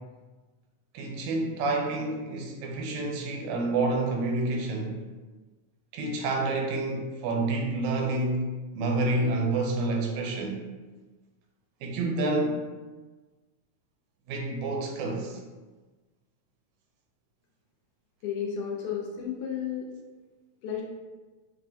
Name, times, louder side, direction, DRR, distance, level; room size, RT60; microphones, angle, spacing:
voice 1, 0.9-5.0 5.9-8.5 8.8-10.6 11.8-12.7 14.3-15.4, right 2 dB, 80° right, 1 dB, 1.8 m, -28 dB
voice 2, 18.2-19.9 20.6-20.8, left 8 dB, 80° left, -1 dB, 2.0 m, -32 dB
6.0 x 2.1 x 2.7 m, 1.3 s
omnidirectional pair, 3.4 m